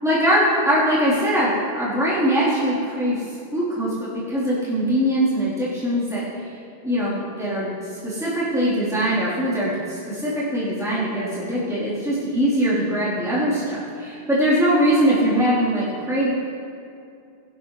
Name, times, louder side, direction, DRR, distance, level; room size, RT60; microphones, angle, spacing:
voice 1, 0.0-6.5 6.8-16.3, equal, 5° right, -12 dB, 4.1 m, -22 dB
24.0 x 12.0 x 3.4 m, 2.5 s
omnidirectional pair, 1.0 m